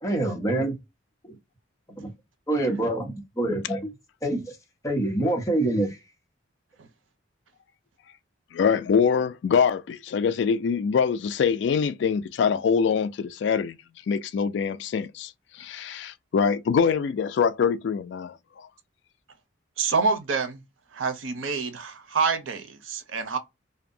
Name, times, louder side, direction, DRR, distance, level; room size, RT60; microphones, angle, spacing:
voice 1, 0.0-0.7 1.2-1.4 2.0-2.1 2.5-3.9 4.2-4.6 4.8-6.0, right 1 dB, 15° left, 0.7 m, -26 dB
voice 2, 8.5-13.8 14.1-18.7, left 6 dB, 65° left, 0.3 m, -24 dB
voice 3, 19.8-20.6 20.9-23.4, right 4 dB, 85° right, 0.6 m, -27 dB
2.6 x 2.1 x 2.5 m
head